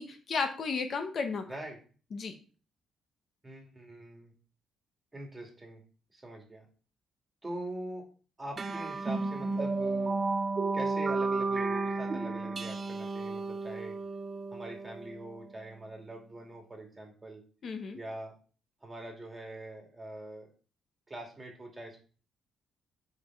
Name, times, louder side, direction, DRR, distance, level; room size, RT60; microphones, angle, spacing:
voice 1, 0.0-1.5 2.1-2.3 17.6-18.0, left 4 dB, 55° left, 7 dB, 0.9 m, -33 dB
voice 2, 1.5-1.8 3.4-4.3 5.1-5.8 6.1-6.7 7.4-8.0 8.4-10.1 10.7-14.0 14.5-17.4 17.9-18.3 18.8-20.5 21.1-22.0, right 1 dB, 20° right, 1 dB, 2.3 m, -43 dB
sound 1, 8.6-15.4, right 3 dB, 35° right, 0.5 m, -33 dB
5.2 x 4.8 x 4.6 m, 0.39 s
cardioid pair, 90°, 0 cm